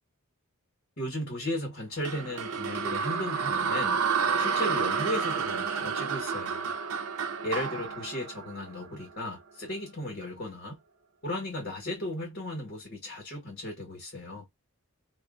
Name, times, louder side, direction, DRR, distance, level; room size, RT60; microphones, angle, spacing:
voice 1, 1.0-4.0 4.4-6.7 7.4-10.8 11.2-14.4, left 1 dB, 50° left, 1.5 m, -35 dB
sound 1, 2.0-9.2, right 6 dB, 90° right, 0.7 m, -30 dB
2.7 x 2.4 x 2.5 m
head